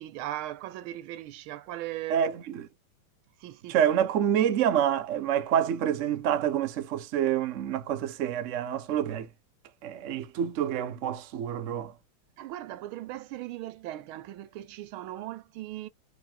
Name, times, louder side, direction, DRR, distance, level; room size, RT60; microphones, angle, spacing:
voice 1, 0.0-2.3 3.4-3.8 12.4-15.9, right 14 dB, 85° right, 1.5 m, -38 dB
voice 2, 2.1-2.7 3.7-9.3 9.8-11.9, right 9 dB, 65° right, 0.7 m, -27 dB
5.0 x 3.1 x 2.2 m
omnidirectional pair, 2.3 m